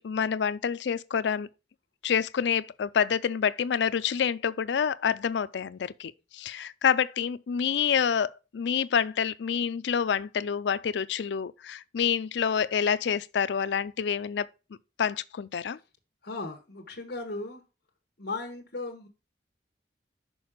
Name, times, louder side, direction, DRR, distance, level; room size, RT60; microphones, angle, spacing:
voice 1, 0.0-1.5 2.0-14.5 15.0-15.8, left 7 dB, 75° left, 0.4 m, -27 dB
voice 2, 16.2-17.6 18.2-19.1, left 3 dB, 60° left, 1.1 m, -36 dB
6.2 x 4.6 x 4.9 m
head